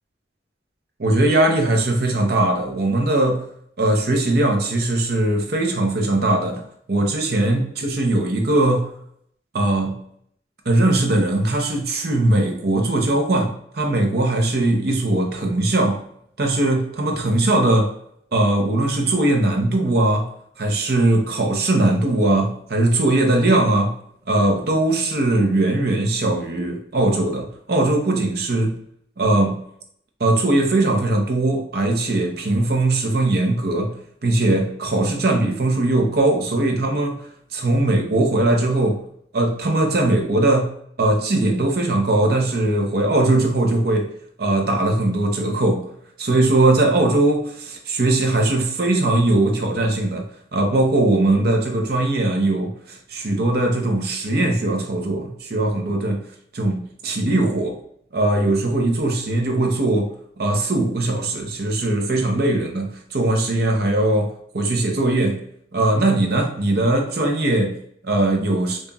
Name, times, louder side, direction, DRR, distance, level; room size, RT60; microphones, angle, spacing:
voice 1, 1.0-3.4 3.8-6.6 6.9-8.9 9.5-10.0 10.7-16.1 16.4-17.9 18.3-20.3 20.6-24.0 24.3-28.8 29.2-29.7 30.2-34.0 34.2-37.2 37.5-39.0 39.3-44.1 44.4-45.9 46.2-56.3 56.5-57.8 58.1-65.4 65.7-68.8, right 2 dB, 60° right, 2 dB, 0.7 m, -20 dB
5.3 x 2.4 x 2.3 m, 0.69 s
head